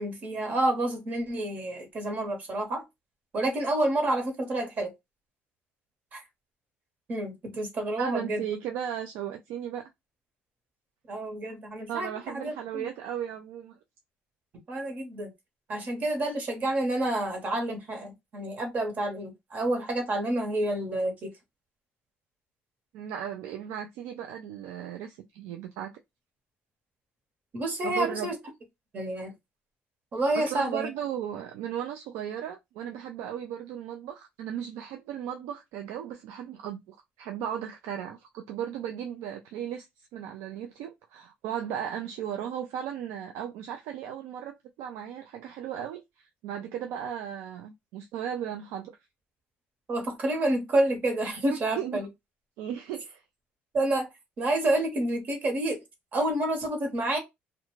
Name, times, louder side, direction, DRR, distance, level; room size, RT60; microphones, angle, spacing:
voice 1, 0.0-2.8 3.3-4.9 6.1-6.2 7.1-8.4 11.1-12.1 12.3-12.9 14.7-15.3 15.7-21.3 27.5-28.4 28.9-29.3 30.1-30.9 49.9-52.1 53.7-54.1 54.4-55.8 56.1-57.2, right 1 dB, 40° right, 1.0 m, -29 dB
voice 2, 8.0-9.9 11.9-13.8 22.9-25.9 27.8-28.3 30.4-49.0 51.4-52.1 52.6-53.2, right 9 dB, 85° right, 0.4 m, -36 dB
2.4 x 2.2 x 3.0 m
cardioid pair, 135°, 5 cm